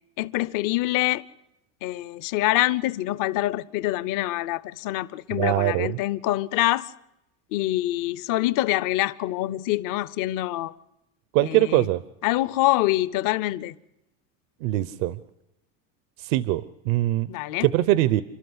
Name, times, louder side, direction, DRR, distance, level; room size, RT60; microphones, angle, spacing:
voice 1, 0.2-1.2 1.8-6.9 7.5-10.7 11.4-11.9 12.2-13.7 17.3-17.7, left 16 dB, 55° left, 0.8 m, -25 dB
voice 2, 5.3-6.0 11.3-12.0 14.6-15.2 16.2-17.3 17.6-18.2, right 16 dB, 75° right, 0.8 m, -22 dB
29.5 x 12.5 x 8.0 m
supercardioid pair, 115°, 39 cm